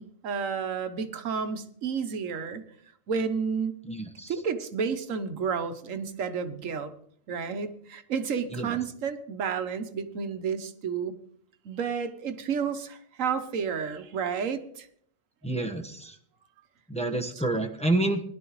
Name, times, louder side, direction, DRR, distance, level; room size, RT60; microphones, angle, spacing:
voice 1, 0.0-2.6 3.1-3.7 4.3-6.9 7.3-11.2 11.6-14.9, right 6 dB, 85° right, 10 dB, 1.3 m, -31 dB
voice 2, 3.8-4.3 8.5-8.8 15.4-16.2 16.9-18.2, right 2 dB, 5° left, 2 dB, 1.1 m, -28 dB
20.5 x 12.0 x 3.1 m, 0.64 s
omnidirectional pair, 1.3 m